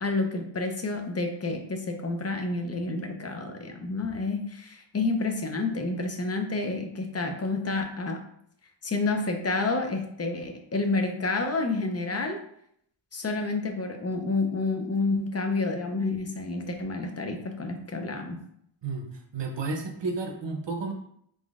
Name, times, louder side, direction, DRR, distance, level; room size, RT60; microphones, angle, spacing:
voice 1, 0.0-8.2 8.8-12.4 13.1-18.4, left 3 dB, 30° left, 4 dB, 0.6 m, -29 dB
voice 2, 19.3-20.9, right 3 dB, 60° right, 3 dB, 0.8 m, -31 dB
3.8 x 3.7 x 2.4 m, 0.70 s
wide cardioid pair, 80°, 48 cm